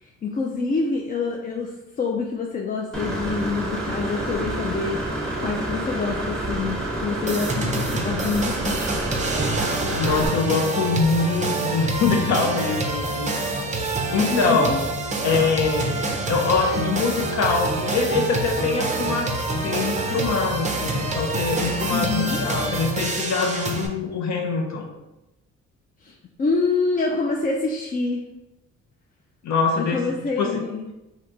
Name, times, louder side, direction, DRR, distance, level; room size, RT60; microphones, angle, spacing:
voice 1, 0.0-5.0 5.4-8.9 14.3-14.7 21.9-22.4 26.0-28.2 29.8-30.9, left 4 dB, 30° left, -1 dB, 0.4 m, -26 dB
Engine / Mechanisms, 2.9-10.3, right 1 dB, ahead, 0.9 m, -28 dB
sound 1, 7.3-23.9, right 2 dB, 25° right, 0.5 m, -27 dB
voice 2, 10.0-14.8 15.2-16.0 16.3-24.9 29.4-30.0 30.4-30.6, left 4 dB, 65° left, 2 dB, 0.7 m, -24 dB
3.3 x 2.8 x 2.6 m, 0.97 s
cardioid pair, 90°, 30 cm